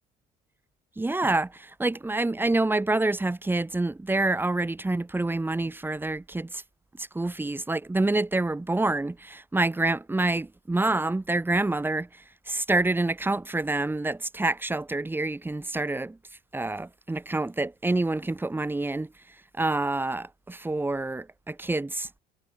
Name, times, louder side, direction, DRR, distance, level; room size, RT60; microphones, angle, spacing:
voice 1, 1.0-6.6 7.0-12.1 12.5-16.2 16.5-19.1 19.6-22.1, right 2 dB, 10° right, 3.1 m, -27 dB
cardioid pair, 110°, 17 cm